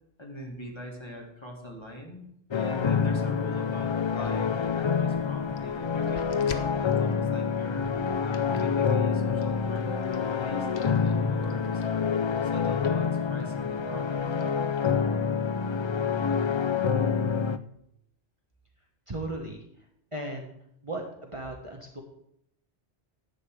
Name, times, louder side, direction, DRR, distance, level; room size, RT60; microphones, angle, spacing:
voice 1, 0.2-2.2 2.5-7.9 8.2-10.0 10.4-12.2 12.4-14.5, left 1 dB, 25° left, 0 dB, 2.1 m, -42 dB
sound 1, 2.5-17.6, left 6 dB, 45° left, 0.3 m, -27 dB
sound 2, 3.7-15.8, left 6 dB, 75° left, 1.1 m, -49 dB
voice 2, 19.1-19.6 20.1-20.5 20.8-22.0, right 1 dB, 30° right, 1 dB, 1.3 m, -36 dB
11.0 x 8.5 x 4.7 m, 0.75 s
omnidirectional pair, 1.1 m